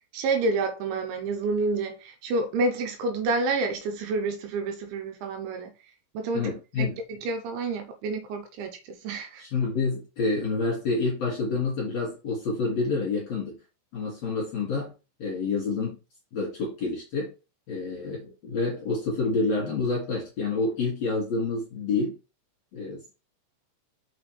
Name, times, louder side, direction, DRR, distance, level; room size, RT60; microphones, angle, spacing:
voice 1, 0.1-5.7 6.1-9.4, right 3 dB, 75° right, 3.1 m, -29 dB
voice 2, 6.3-7.0 9.4-13.6 13.9-14.9 15.2-16.0 16.3-17.3 17.7-22.2 22.7-23.0, left 3 dB, 45° left, 2.4 m, -28 dB
6.1 x 5.9 x 3.3 m
omnidirectional pair, 5.8 m